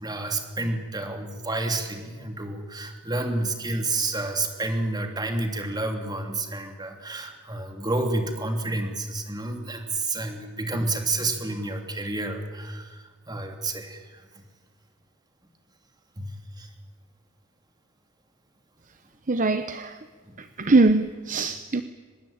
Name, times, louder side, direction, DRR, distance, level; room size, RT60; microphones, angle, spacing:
voice 1, 0.0-14.4 16.2-16.7 20.3-20.4, right 2 dB, 20° right, 4 dB, 3.2 m, -30 dB
voice 2, 19.3-20.1 20.4-21.8, right 3 dB, 40° right, 10 dB, 0.9 m, -22 dB
24.5 x 21.0 x 8.9 m, 1.5 s
head